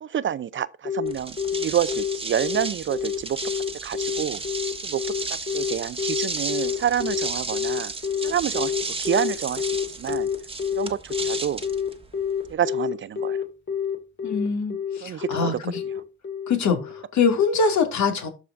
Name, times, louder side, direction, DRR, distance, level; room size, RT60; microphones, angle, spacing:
voice 1, 0.0-3.4 3.8-4.4 4.8-5.0 5.5-7.9 8.2-8.7 9.0-9.6 10.0-10.3 10.8-11.6 12.5-13.4 15.0-15.5, right 9 dB, 40° right, 0.5 m, -28 dB
Telephone, 0.8-17.0, left 7 dB, 40° left, 2.2 m, -28 dB
sound 1, 1.1-12.5, right 3 dB, 20° right, 1.3 m, -33 dB
voice 2, 14.2-15.8 16.5-18.3, left 5 dB, 70° left, 2.2 m, -23 dB
12.5 x 4.9 x 2.5 m
cardioid pair, 90°, 30 cm